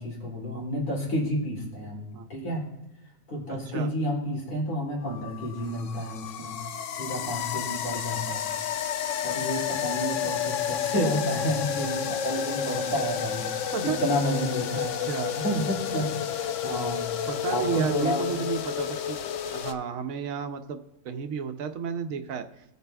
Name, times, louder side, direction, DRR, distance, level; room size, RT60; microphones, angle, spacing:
voice 1, 0.0-2.6 3.3-6.6 7.0-8.5 9.2-13.5 13.8-15.0 15.4-17.1 17.5-18.3, equal, 90° left, -4 dB, 3.4 m, -30 dB
voice 2, 3.5-3.9 13.7-14.0 14.7-15.3 17.3-19.2 19.5-20.8 21.0-22.4, right 6 dB, 70° right, 8 dB, 1.1 m, -32 dB
sound 1, 5.1-19.7, left 9 dB, 65° left, 0.8 m, -31 dB
18.5 x 6.7 x 2.3 m, 0.90 s
omnidirectional pair, 1.6 m